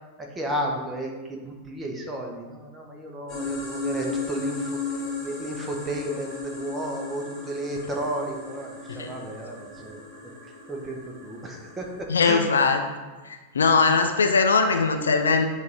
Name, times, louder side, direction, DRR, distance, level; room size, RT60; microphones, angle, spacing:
voice 1, 0.2-4.8 5.2-10.0 10.7-12.4, right 1 dB, 15° right, 0 dB, 1.0 m, -33 dB
sound 1, 3.3-12.0, left 3 dB, 25° left, 1.5 m, -35 dB
voice 2, 12.1-12.8 13.3-15.5, left 4 dB, 70° left, 6 dB, 0.4 m, -21 dB
8.0 x 2.7 x 4.8 m, 1.3 s
figure-of-eight pair, 90°, 0 cm